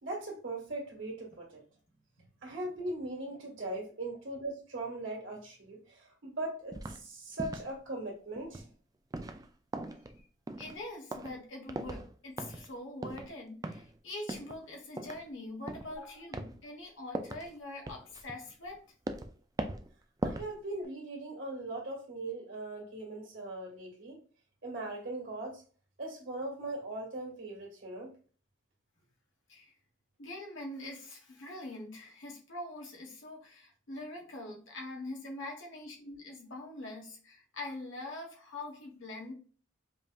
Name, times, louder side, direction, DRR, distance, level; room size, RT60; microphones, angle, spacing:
voice 1, 0.0-1.6 2.4-8.7 20.2-24.2 24.6-25.6 26.0-28.1, right 2 dB, 65° right, -1 dB, 1.8 m, -40 dB
sound 1, 6.7-7.0 7.3-7.7 8.4-8.7 9.1-9.5 9.7-10.2 10.5-10.8 11.1-11.4 11.7-12.1 12.4-12.7 13.0-13.3 13.6-13.9 14.3-14.6 15.0-15.2 15.7-16.0 16.3-16.6 17.1-17.5 17.9-18.7 19.1-19.3 19.6-19.9 20.2-20.5 20.8-20.9, right 2 dB, 20° right, 0.3 m, -39 dB
voice 2, 10.6-18.8 19.1-19.2 29.5-29.7 30.2-39.3, left 2 dB, 65° left, 0 dB, 1.3 m, -44 dB
5.2 x 2.7 x 2.4 m, 0.40 s
head